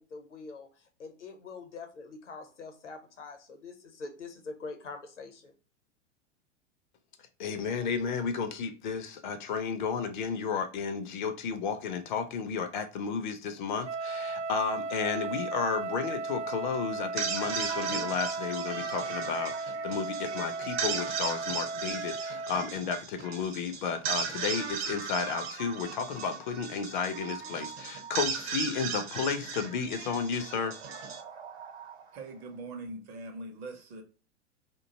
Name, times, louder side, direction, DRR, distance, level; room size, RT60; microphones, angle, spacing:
voice 1, 0.0-5.5, left 4 dB, 80° left, 0.8 m, -44 dB
voice 2, 7.4-30.8, left 6 dB, 45° left, 0.4 m, -33 dB
Wind instrument woodwind instrument, 13.8-22.7, right 3 dB, 80° right, 0.5 m, -36 dB
sound 1, 17.0-32.2, right 6 dB, 55° right, 0.8 m, -37 dB
voice 3, 32.1-34.0, right 2 dB, 30° right, 0.6 m, -42 dB
2.5 x 2.2 x 3.8 m
figure-of-eight pair, 100°, 36 cm